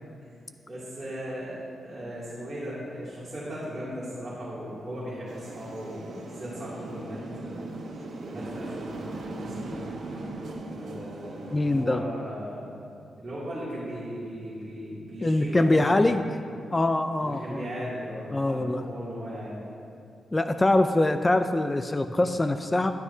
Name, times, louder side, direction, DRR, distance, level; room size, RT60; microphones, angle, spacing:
voice 1, 0.7-7.7 8.1-9.8 10.7-12.7 13.2-16.0 17.2-19.6, equal, 25° right, -11 dB, 2.6 m, -37 dB
sound 1, 5.3-11.9, right 2 dB, 75° right, 1.3 m, -38 dB
voice 2, 11.5-12.0 15.2-16.2 16.7-17.6 18.3-18.8 20.3-22.9, left 2 dB, 20° left, 9 dB, 0.3 m, -23 dB
12.5 x 11.5 x 2.7 m, 2.5 s
cardioid pair, 105°, 0 cm